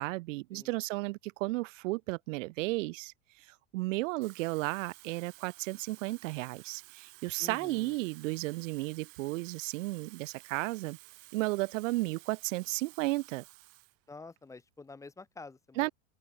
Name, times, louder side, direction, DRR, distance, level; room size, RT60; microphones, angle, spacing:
voice 1, 0.0-3.1 3.5-11.0 11.3-13.4 15.8-15.9, right 22 dB, 65° right, 0.9 m, -34 dB
Water tap faucet / Fill (with liquid), 4.1-14.0 14.4-14.6, right 40 dB or more, 45° right, 1.3 m, -55 dB
voice 2, 7.4-8.0 14.1-15.9, left 3 dB, 10° left, 1.0 m, -48 dB
open air
supercardioid pair, 150°, 41 cm